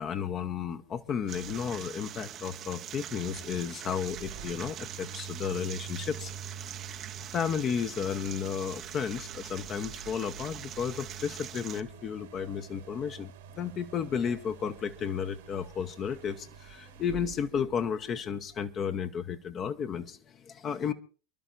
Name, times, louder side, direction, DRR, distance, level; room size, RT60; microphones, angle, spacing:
voice 1, 0.0-6.3 7.3-20.9, left 7 dB, 35° left, 8 dB, 0.9 m, -33 dB
sound 1, 1.0-18.5, right 6 dB, 65° right, 1.5 m, -47 dB
sound 2, 1.3-11.8, right 10 dB, 35° right, 0.7 m, -43 dB
28.0 x 12.0 x 2.6 m, 0.37 s
figure-of-eight pair, 90°, 0 cm